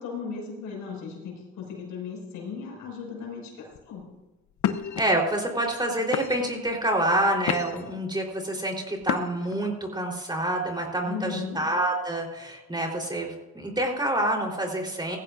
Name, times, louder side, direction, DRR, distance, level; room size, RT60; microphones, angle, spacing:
voice 1, 0.0-4.1 11.0-11.6, left 5 dB, 90° left, -1 dB, 5.6 m, -36 dB
sound 1, 3.7-4.0 4.6-5.0 5.7-5.8 6.1-6.6 7.1-7.9 9.0-9.5, left 9 dB, 70° left, 0.9 m, -30 dB
voice 2, 5.0-15.2, right 1 dB, 15° right, 0 dB, 3.8 m, -27 dB
17.5 x 15.0 x 2.6 m, 1.1 s
cardioid pair, 90°, 30 cm